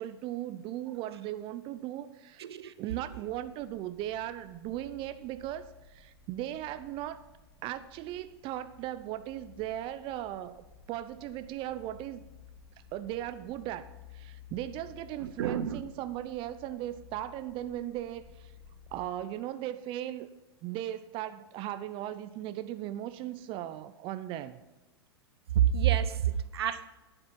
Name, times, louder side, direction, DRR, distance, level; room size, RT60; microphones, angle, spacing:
voice 1, 0.0-2.5 2.8-7.2 7.6-12.2 12.9-13.9 14.1-18.5 18.9-20.3 20.6-24.6 26.7-26.8, right 13 dB, 40° right, 12 dB, 0.7 m, -37 dB
voice 2, 2.4-2.7 15.2-15.8 25.5-26.9, right 10 dB, 70° right, 13 dB, 0.8 m, -28 dB
sound 1, 2.9-19.1, left 7 dB, 5° right, 2.6 m, -55 dB
11.5 x 9.0 x 5.9 m, 1.1 s
hypercardioid pair, 100°, 14 cm